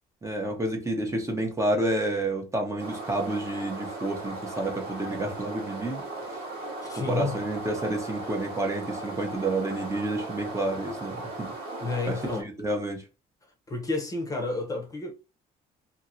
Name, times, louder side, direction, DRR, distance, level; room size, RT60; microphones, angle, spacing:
voice 1, 0.2-6.0 6.3-6.4 6.9-11.5 12.1-12.2 12.4-13.0, right 1 dB, 15° right, 0.8 m, -29 dB
sound 1, 2.8-12.4, right 2 dB, 80° right, 1.4 m, -37 dB
voice 2, 6.8-7.4 11.8-12.5 13.7-15.1, left 3 dB, 20° left, 0.8 m, -30 dB
2.9 x 2.8 x 2.6 m
cardioid pair, 110°, 17 cm